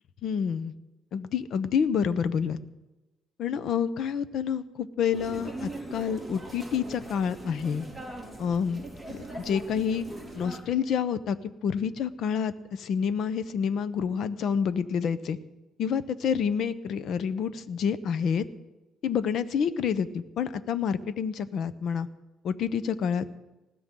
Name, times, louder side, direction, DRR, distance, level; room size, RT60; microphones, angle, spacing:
voice 1, 0.2-0.7 1.1-2.6 3.4-7.9 8.4-10.0 10.3-11.4 11.6-15.4 15.8-18.4 19.0-22.1 22.4-23.2, left 7 dB, 60° left, 14 dB, 0.9 m, -28 dB
sound 1, 5.1-10.6, right 2 dB, 10° left, 4.1 m, -41 dB
19.5 x 16.0 x 3.9 m, 1.1 s
cardioid pair, 110°, 0 cm